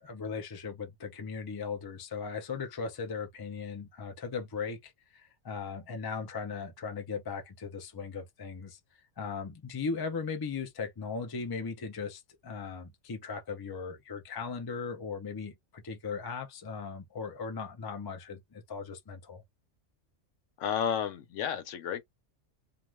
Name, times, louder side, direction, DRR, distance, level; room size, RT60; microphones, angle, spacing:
voice 1, 0.0-8.8 9.2-19.4, left 5 dB, 40° left, 0.3 m, -38 dB
voice 2, 20.6-22.0, left 8 dB, 80° left, 1.0 m, -31 dB
2.4 x 2.3 x 3.1 m
omnidirectional pair, 1.3 m